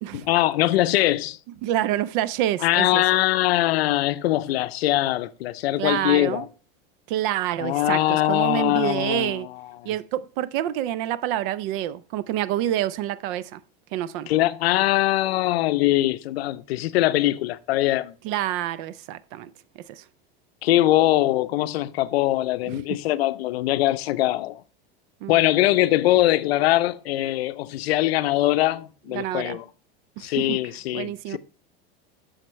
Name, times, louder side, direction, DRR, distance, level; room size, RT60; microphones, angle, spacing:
voice 1, 0.1-1.4 2.6-6.5 7.6-9.5 14.3-18.1 20.6-24.6 25.3-29.6 30.2-31.4, left 15 dB, 85° left, 0.6 m, -22 dB
voice 2, 1.6-3.0 5.8-6.5 7.1-9.5 9.9-13.6 13.9-14.3 18.2-19.5 19.9-20.0 22.7-23.0 25.2-25.4 29.1-29.6 30.2-30.6 30.9-31.4, right 13 dB, 60° right, 0.5 m, -27 dB
7.5 x 6.5 x 3.1 m
supercardioid pair, 115°, 30 cm